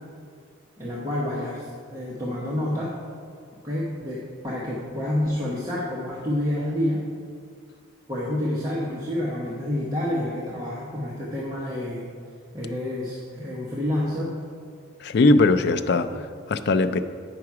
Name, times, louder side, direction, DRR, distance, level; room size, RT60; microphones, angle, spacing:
voice 1, 0.8-2.9 3.6-4.2 4.4-7.0 8.1-12.1 12.5-14.3, left 1 dB, 15° right, -7 dB, 1.0 m, -28 dB
voice 2, 15.0-17.0, left 2 dB, 55° left, 8 dB, 0.4 m, -20 dB
8.6 x 5.9 x 4.7 m, 2.2 s
head